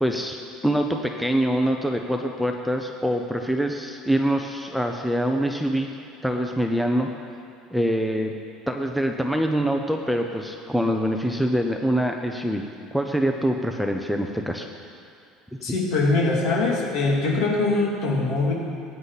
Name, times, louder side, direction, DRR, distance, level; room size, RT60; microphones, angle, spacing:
voice 1, 0.0-5.9 6.2-7.1 7.7-8.4 8.7-14.7, equal, ahead, 3 dB, 0.6 m, -24 dB
voice 2, 15.6-18.5, left 3 dB, 60° left, -2 dB, 2.6 m, -22 dB
19.5 x 9.9 x 4.1 m, 2.4 s
cardioid pair, 155°, 0 cm